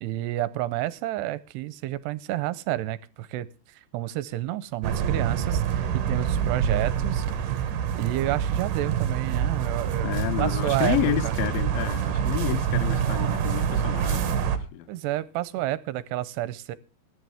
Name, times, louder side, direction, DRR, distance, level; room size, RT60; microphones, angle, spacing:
voice 1, 0.0-10.1 10.4-11.0 11.2-11.3 14.9-16.8, right 15 dB, 80° right, 2.8 m, -30 dB
sound 1, 4.8-14.6, right 8 dB, 60° right, 2.9 m, -26 dB
voice 2, 10.0-14.9, left 14 dB, 75° left, 2.3 m, -30 dB
21.0 x 10.5 x 3.5 m
omnidirectional pair, 4.8 m